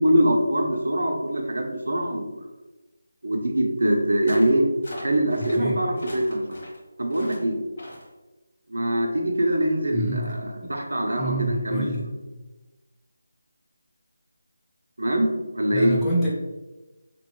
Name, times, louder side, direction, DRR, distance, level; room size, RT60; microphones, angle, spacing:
voice 1, 0.0-2.4 3.2-4.7 5.0-6.4 7.0-7.6 8.7-12.0 15.0-15.3 15.5-16.0, right 1 dB, 80° right, 1 dB, 0.6 m, -23 dB
sound 1, 4.3-4.5 4.8-5.6 6.0-6.8 7.1-7.4 7.8-8.1, left 1 dB, 55° left, 1.3 m, -40 dB
voice 2, 9.9-10.3 11.2-12.1 15.7-16.3, right 1 dB, 10° left, -7 dB, 0.6 m, -27 dB
2.9 x 2.6 x 3.0 m, 1.1 s
figure-of-eight pair, 165°, 0 cm